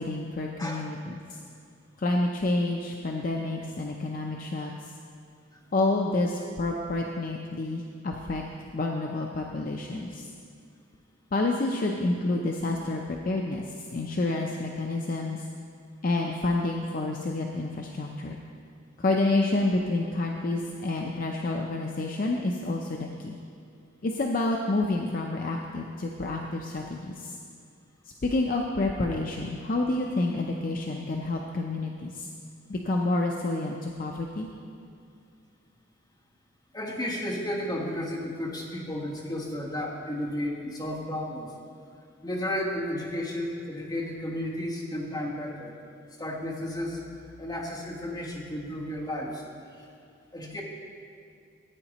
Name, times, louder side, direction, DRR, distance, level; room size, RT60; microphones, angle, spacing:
voice 1, 0.0-1.4 2.0-4.9 5.7-8.4 8.7-10.3 11.3-13.6 13.9-15.5 16.0-18.4 19.0-23.4 24.0-27.4 28.2-32.3 32.7-34.5, left 2 dB, 40° left, 0 dB, 0.5 m, -29 dB
voice 2, 36.7-41.5 42.2-45.7 46.2-49.4 49.8-49.9 50.3-50.6, left 1 dB, 20° left, -4 dB, 1.3 m, -33 dB
14.0 x 9.0 x 2.9 m, 2.4 s
head